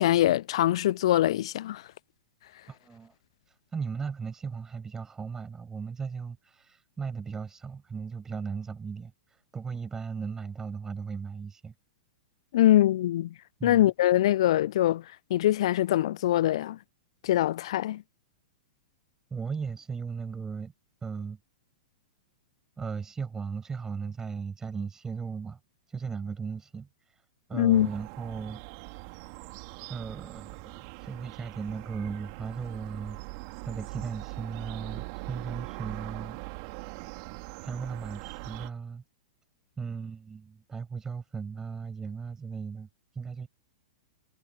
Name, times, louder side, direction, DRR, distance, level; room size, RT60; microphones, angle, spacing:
voice 1, 0.0-1.9 12.5-13.3 13.6-16.8 17.2-18.0 27.5-27.9, left 13 dB, 55° left, 0.5 m, -23 dB
voice 2, 2.7-3.1 3.5-11.7 13.6-13.9 19.3-20.7 21.0-21.4 22.8-25.6 25.9-27.2 27.5-28.6 29.9-36.4 37.6-39.0 39.8-42.9 43.1-43.5, right 5 dB, 15° right, 7.3 m, -37 dB
sound 1, 27.7-38.7, right 37 dB, 45° right, 3.4 m, -42 dB
figure-of-eight pair, 100°, 4 cm